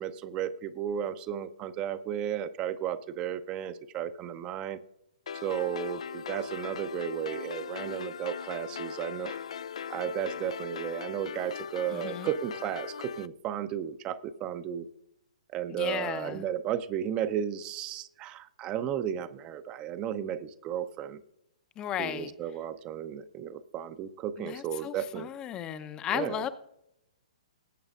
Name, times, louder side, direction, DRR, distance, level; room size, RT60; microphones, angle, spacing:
voice 1, 0.0-4.8 5.3-9.4 9.9-14.9 15.5-21.2 22.0-25.3 26.1-26.5, right 9 dB, 25° right, 12 dB, 0.6 m, -34 dB
sound 1, 5.3-13.3, left 7 dB, 60° left, 0.3 m, -39 dB
voice 2, 11.9-12.3 15.7-16.4 21.8-22.3 24.4-26.5, left 10 dB, 20° left, 12 dB, 0.6 m, -35 dB
19.5 x 8.7 x 2.5 m, 0.82 s
figure-of-eight pair, 120°, 4 cm